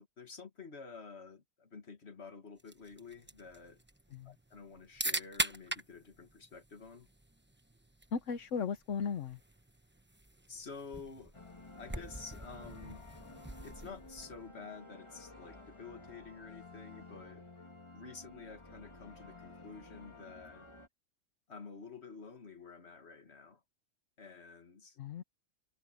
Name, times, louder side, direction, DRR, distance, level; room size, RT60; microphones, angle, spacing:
voice 1, 0.0-3.8 4.2-7.1 10.5-11.3 11.8-13.0 13.6-17.5 17.9-20.7 21.5-23.6 24.2-25.0, left 4 dB, 60° left, 2.2 m, -50 dB
sound 1, 2.6-14.5, right 1 dB, 10° right, 1.0 m, -43 dB
voice 2, 8.1-9.4 25.0-25.2, left 6 dB, 80° left, 1.3 m, -36 dB
sound 2, 11.3-20.9, left 2 dB, 25° left, 1.9 m, -53 dB
omnidirectional pair, 1.3 m